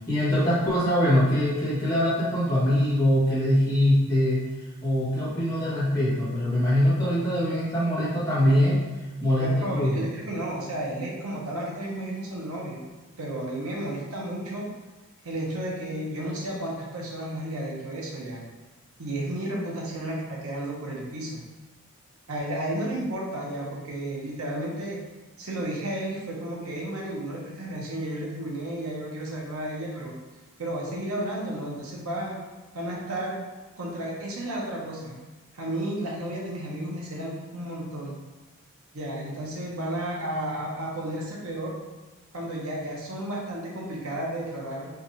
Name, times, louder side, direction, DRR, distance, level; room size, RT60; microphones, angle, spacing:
voice 1, 0.1-4.4 4.8-8.8 9.2-10.1, equal, 15° left, -10 dB, 1.3 m, -23 dB
voice 2, 9.4-12.8 13.2-14.7 15.2-18.4 19.0-21.4 22.3-25.0 25.4-30.1 30.6-32.4 32.7-33.4 33.8-35.2 35.5-38.1 38.9-41.7 42.3-44.9, right 1 dB, 85° right, -3 dB, 1.0 m, -32 dB
4.6 x 2.5 x 3.1 m, 1.2 s
head